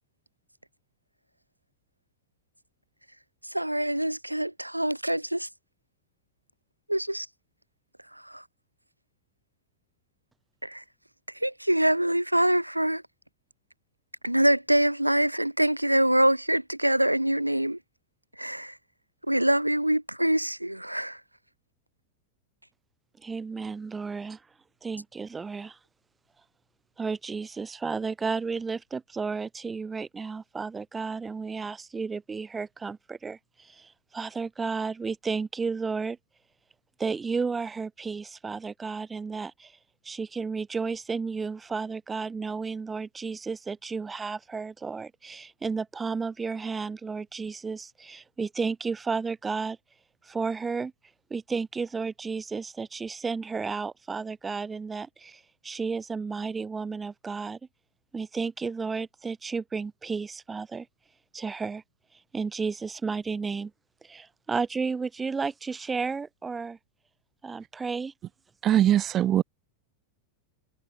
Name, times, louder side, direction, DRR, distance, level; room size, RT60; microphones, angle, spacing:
voice 1, 3.4-5.5 6.9-7.3 8.1-8.4 10.6-10.8 11.3-13.0 14.2-17.8 18.4-18.8 19.2-21.2, right 1 dB, 85° right, 0.8 m, -25 dB
voice 2, 23.2-24.4 24.8-25.8 27.0-36.2 37.0-39.7 40.0-49.8 50.3-50.9 51.3-57.6 58.1-60.9 61.3-61.8 62.3-63.7 64.1-66.8 67.4-68.1, right 4 dB, 15° right, 0.7 m, -32 dB
voice 3, 68.6-69.4, right 11 dB, 30° right, 1.2 m, -21 dB
figure-of-eight pair, 90°, 0 cm